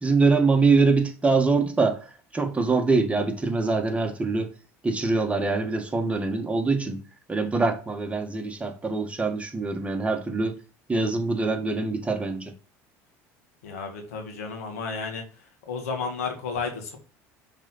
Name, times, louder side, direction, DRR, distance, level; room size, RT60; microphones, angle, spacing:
voice 1, 0.0-4.5 4.8-7.0 7.3-10.6 10.9-12.5, right 3 dB, 15° right, 1.6 m, -24 dB
voice 2, 13.6-15.2 15.7-17.0, left 5 dB, 85° left, 1.8 m, -32 dB
6.0 x 3.9 x 4.0 m
hypercardioid pair, 80°, 8 cm